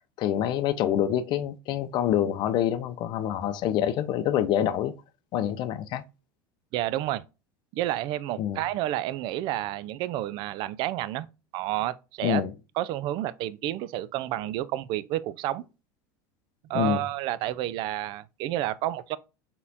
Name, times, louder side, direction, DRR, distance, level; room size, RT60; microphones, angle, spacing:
voice 1, 0.2-4.9 5.3-6.0 8.4-8.6 12.2-12.5 16.7-17.0, left 10 dB, 50° left, 0.5 m, -26 dB
voice 2, 6.7-7.2 7.7-11.3 11.5-12.4 12.8-15.6 16.7-19.2, right 14 dB, 55° right, 0.3 m, -30 dB
4.1 x 3.7 x 2.7 m
supercardioid pair, 115°, 10 cm